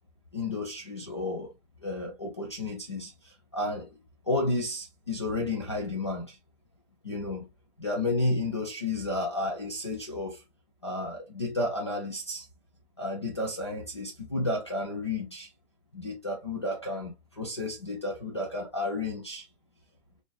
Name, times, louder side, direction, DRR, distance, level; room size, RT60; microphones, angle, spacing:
voice 1, 0.3-1.5 1.8-3.9 4.2-6.4 7.0-7.5 7.8-10.4 10.8-12.5 13.0-15.5 15.9-19.5, left 2 dB, 25° left, 0.4 m, -32 dB
3.9 x 2.4 x 2.4 m
hypercardioid pair, 165°, 36 cm